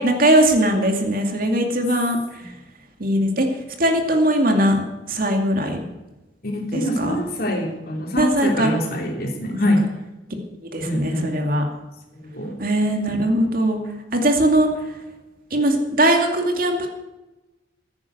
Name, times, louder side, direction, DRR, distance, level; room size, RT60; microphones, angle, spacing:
voice 1, 0.0-2.2 3.0-3.5 3.8-4.8 5.1-5.8 6.7-7.2 8.2-8.7 10.7-11.6 12.6-13.8 14.1-14.7 15.5-16.9, right 1 dB, 50° right, 3 dB, 2.4 m, -20 dB
voice 2, 6.4-9.9 10.8-11.3 12.2-12.6, equal, 50° left, 1 dB, 3.4 m, -24 dB
16.0 x 9.7 x 8.1 m, 1.0 s
head